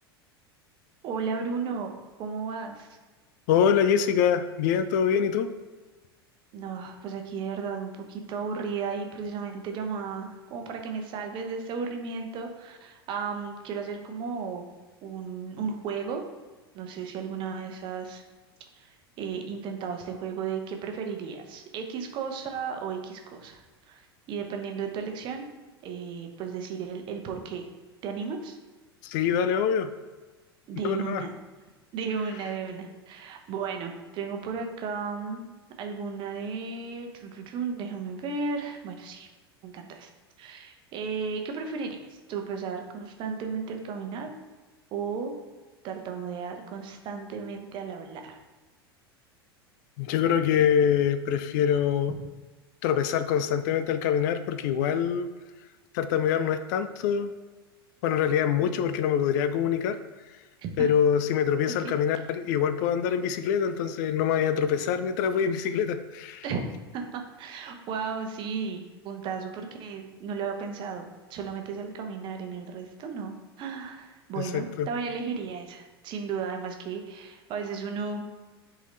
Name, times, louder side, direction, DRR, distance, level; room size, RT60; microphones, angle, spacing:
voice 1, 1.0-1.9 2.2-2.9 6.5-14.7 15.0-16.2 16.7-18.2 18.7-25.5 25.8-27.7 28.0-28.6 30.7-31.3 31.9-39.3 39.6-40.1 40.4-44.3 44.9-45.3 45.8-48.4 60.6-60.9 61.7-61.9 66.4-78.2, right 5 dB, 40° right, 4 dB, 0.9 m, -34 dB
voice 2, 3.5-5.5 29.0-29.9 30.8-31.2 50.0-52.1 52.8-55.3 55.9-57.3 58.0-60.0 60.8-66.4 74.4-74.9, left 8 dB, 45° left, 11 dB, 0.4 m, -25 dB
8.0 x 3.8 x 3.3 m, 1.3 s
figure-of-eight pair, 85°, 13 cm